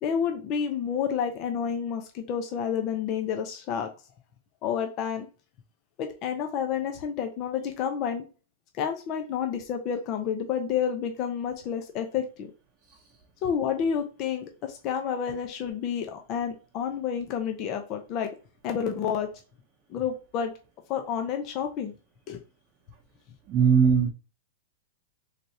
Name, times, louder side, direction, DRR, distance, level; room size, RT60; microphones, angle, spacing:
voice 1, 0.0-3.9 4.6-5.3 6.0-8.3 8.8-12.5 13.4-18.3 18.6-19.3 19.9-20.5 20.9-21.9 22.3-22.4, left 7 dB, 40° left, 5 dB, 0.7 m, -29 dB
voice 2, 23.5-24.1, right 7 dB, 30° right, 0 dB, 0.8 m, -20 dB
4.1 x 3.3 x 2.8 m, 0.33 s
hypercardioid pair, 140°, 0 cm